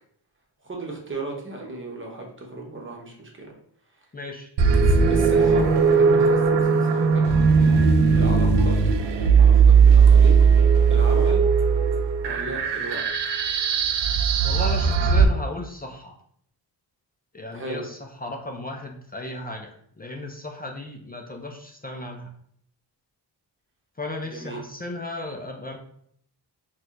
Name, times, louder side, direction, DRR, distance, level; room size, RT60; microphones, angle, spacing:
voice 1, 0.6-3.5 4.9-7.2 8.1-8.8 9.4-10.4 10.9-11.4 12.2-13.0 17.5-17.8 24.2-24.6, right 2 dB, 30° right, 0 dB, 0.9 m, -35 dB
voice 2, 4.1-4.5 14.4-16.2 17.3-22.3 24.0-25.8, left 1 dB, 20° left, 2 dB, 0.4 m, -35 dB
sound 1, 4.6-15.2, right 5 dB, 75° right, 0.5 m, -18 dB
4.2 x 2.3 x 2.5 m, 0.65 s
cardioid pair, 75°, 43 cm